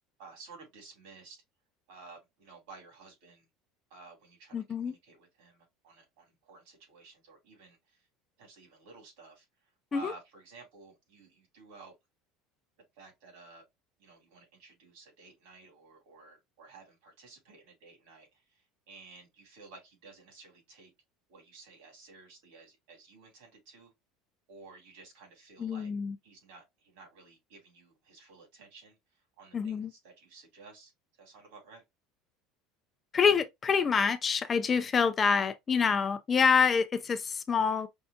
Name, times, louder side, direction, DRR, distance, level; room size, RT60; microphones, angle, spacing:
voice 1, 0.2-1.4 1.9-3.5 3.9-8.1 8.4-9.4 9.9-11.9 12.9-13.6 14.0-20.9 21.3-23.9 24.5-25.9 26.2-30.9 31.2-31.8, right 3 dB, 80° right, 2.9 m, -53 dB
voice 2, 4.5-4.9 9.9-10.1 25.6-26.1 29.5-29.9 33.1-37.9, left 6 dB, 20° left, 0.4 m, -26 dB
5.3 x 2.3 x 2.5 m
cardioid pair, 170°, 0 cm